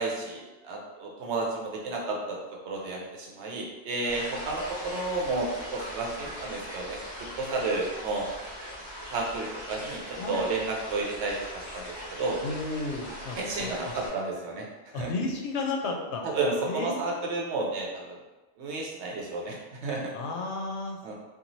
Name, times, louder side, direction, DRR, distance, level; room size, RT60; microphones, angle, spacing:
voice 1, 0.0-2.4 2.6-7.0 7.4-8.3 9.1-12.4 13.4-14.7 15.0-15.1 16.3-18.2 18.6-20.1 21.0-21.1, right 3 dB, 80° right, -1 dB, 0.9 m, -31 dB
sound 1, 4.1-14.1, equal, 25° left, 1.3 m, -40 dB
voice 2, 10.2-10.9 12.4-14.2 14.9-16.2 16.6-17.3 20.1-21.1, left 3 dB, 80° left, 1 dB, 0.8 m, -34 dB
2.9 x 2.4 x 2.6 m, 1.1 s
omnidirectional pair, 1.1 m